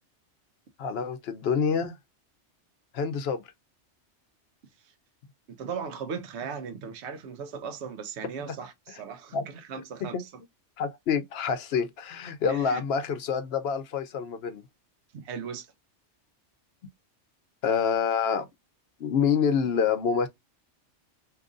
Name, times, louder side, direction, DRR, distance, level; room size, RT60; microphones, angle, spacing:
voice 1, 0.8-2.0 2.9-3.4 9.3-9.4 9.7-9.8 10.1-10.2 10.8-14.6 17.6-18.5 19.0-20.3, left 6 dB, 65° left, 0.8 m, -27 dB
voice 2, 5.5-10.3 12.5-12.8 15.1-15.7, right 6 dB, 70° right, 0.9 m, -37 dB
2.9 x 2.5 x 3.6 m
omnidirectional pair, 1.2 m